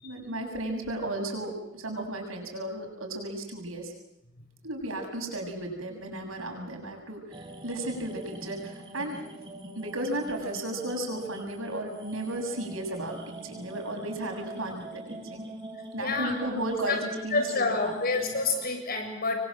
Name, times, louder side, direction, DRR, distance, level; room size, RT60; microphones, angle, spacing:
voice 1, 0.0-3.9 4.6-9.3 9.7-15.5 15.9-17.9, right 1 dB, 90° right, 3 dB, 7.7 m, -34 dB
sound 1, 7.3-18.7, right 2 dB, 25° right, 4.5 m, -43 dB
voice 2, 16.0-16.3 16.9-17.0 17.3-19.4, left 3 dB, 50° left, 4 dB, 7.2 m, -28 dB
28.0 x 24.0 x 7.7 m, 0.85 s
head